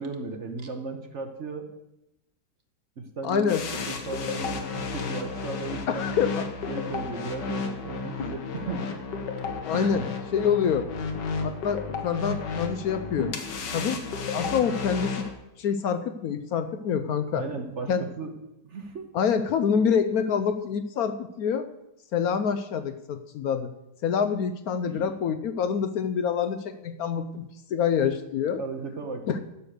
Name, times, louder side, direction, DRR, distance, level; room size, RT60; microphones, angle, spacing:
voice 1, 0.0-1.7 3.0-3.5 3.9-6.3 6.7-8.9 9.7-10.1 17.3-18.3 18.6-19.1 24.9-25.0 28.6-29.4, right 4 dB, 50° right, 6 dB, 1.2 m, -36 dB
voice 2, 3.2-3.6 5.9-6.4 9.6-10.0 10.3-10.9 11.4-13.3 13.7-14.0 14.3-15.2 15.6-17.4 17.9-18.0 19.1-21.7 22.1-23.7 24.0-28.6 29.3-29.4, left 7 dB, 70° left, 10 dB, 1.0 m, -26 dB
sound 1, 3.5-15.3, left 4 dB, 90° left, 1.8 m, -33 dB
11.0 x 6.7 x 6.5 m, 0.89 s
omnidirectional pair, 1.8 m